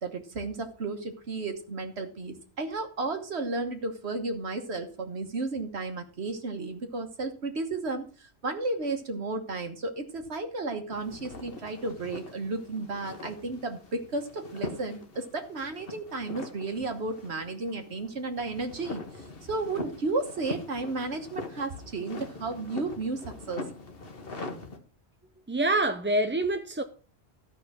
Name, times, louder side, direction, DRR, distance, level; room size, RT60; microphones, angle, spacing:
voice 1, 0.0-23.6, right 3 dB, 75° right, 1.5 m, -33 dB
sound 1, 10.9-24.8, left 3 dB, 60° left, 1.7 m, -42 dB
voice 2, 25.5-26.8, right 2 dB, 15° right, 0.4 m, -26 dB
13.5 x 5.4 x 6.0 m
omnidirectional pair, 1.1 m